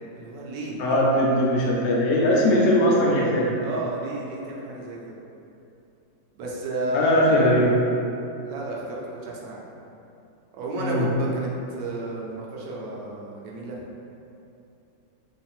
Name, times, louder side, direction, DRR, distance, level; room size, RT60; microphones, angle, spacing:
voice 1, 0.2-1.0 3.6-5.0 6.4-7.4 8.4-9.6 10.5-13.8, right 2 dB, 75° right, -4 dB, 1.2 m, -32 dB
voice 2, 0.8-3.5 6.9-7.8 10.8-11.1, equal, 85° left, -3 dB, 1.4 m, -20 dB
3.2 x 2.5 x 4.2 m, 2.8 s
omnidirectional pair, 2.0 m